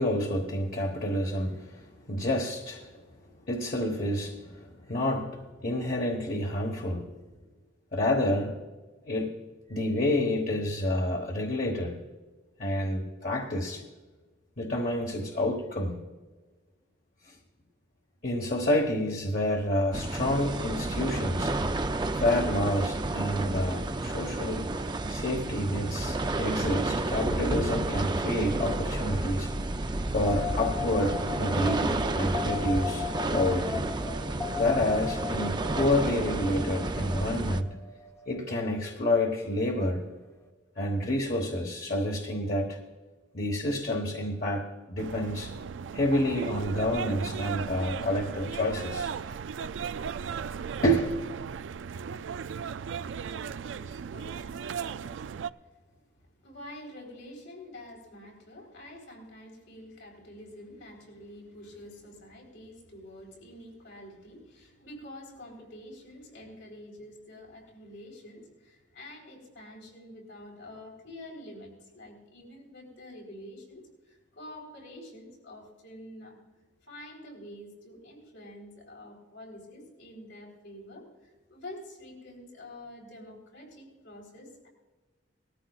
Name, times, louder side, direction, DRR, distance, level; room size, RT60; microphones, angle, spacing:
voice 1, 0.0-7.2 7.9-8.6 9.1-9.3 9.7-12.0 12.6-13.8 14.6-16.0 17.2-17.4 18.2-21.5 22.1-24.6 25.1-29.5 30.1-33.9 34.5-37.7 38.3-40.0 40.8-42.8 43.3-45.5 45.9-49.2 50.8-51.1, left 1 dB, 50° left, 0 dB, 1.3 m, -29 dB
sound 1, 19.9-37.6, right 2 dB, 25° right, 0.5 m, -31 dB
sound 2, 30.3-40.4, left 7 dB, 15° left, 0.7 m, -39 dB
sound 3, 45.0-55.5, right 6 dB, 85° right, 0.4 m, -36 dB
voice 2, 53.1-55.4 55.6-55.8 56.3-76.4 76.8-84.7, left 1 dB, 85° left, -1 dB, 3.8 m, -47 dB
19.5 x 14.0 x 2.4 m, 1.2 s
head